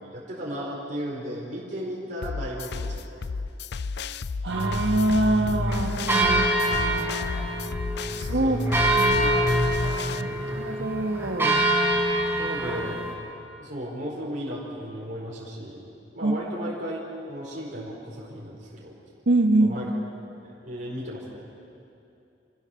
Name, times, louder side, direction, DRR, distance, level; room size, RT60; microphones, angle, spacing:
voice 1, 0.0-3.3 6.2-6.4 8.1-8.7 9.1-9.4 10.1-10.5 12.4-13.1 13.6-15.8 16.1-18.9 19.6-19.9 20.4-21.5, equal, 45° right, -4 dB, 4.5 m, -35 dB
sound 1, 2.2-10.2, left 4 dB, 60° left, 0.5 m, -32 dB
voice 2, 4.4-7.2 8.2-8.6 8.9-9.5 10.2-10.3 10.5-11.7 16.2-16.4 19.3-19.9, right 2 dB, 70° right, 6 dB, 1.5 m, -25 dB
sound 2, 4.5-13.1, right 1 dB, 10° right, 4.6 m, -25 dB
27.5 x 15.5 x 7.0 m, 2.7 s
head